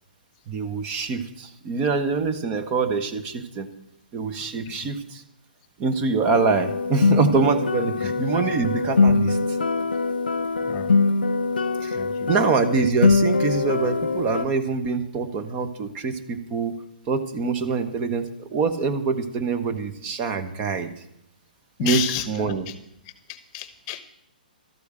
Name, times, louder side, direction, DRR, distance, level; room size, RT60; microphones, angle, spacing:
voice 1, 0.5-3.7 4.1-5.2 5.8-9.4 11.8-12.0 12.3-16.8 17.1-20.9 21.8-22.0 22.3-22.6, right 4 dB, 25° right, 7 dB, 1.2 m, -25 dB
sound 1, 6.2-14.4, left 4 dB, 75° left, 0.6 m, -23 dB
voice 2, 10.7-11.0 11.9-12.3 21.8-22.3 22.7-22.8 23.0-24.0, left 12 dB, 30° left, 13 dB, 1.0 m, -32 dB
13.0 x 8.4 x 7.7 m, 0.76 s
figure-of-eight pair, 125°, 5 cm